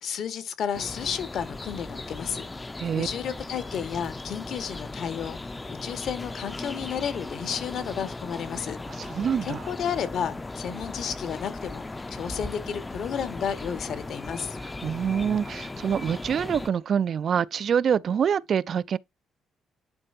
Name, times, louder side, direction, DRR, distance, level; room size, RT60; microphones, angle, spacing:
voice 1, 0.0-2.5 2.9-9.1 9.4-14.6, left 8 dB, 70° left, 1.7 m, -32 dB
sound 1, 0.7-16.7, left 2 dB, 20° left, 0.6 m, -37 dB
voice 2, 9.0-9.6 14.8-19.0, right 7 dB, 55° right, 0.4 m, -25 dB
10.5 x 4.3 x 2.7 m
cardioid pair, 90°, 0 cm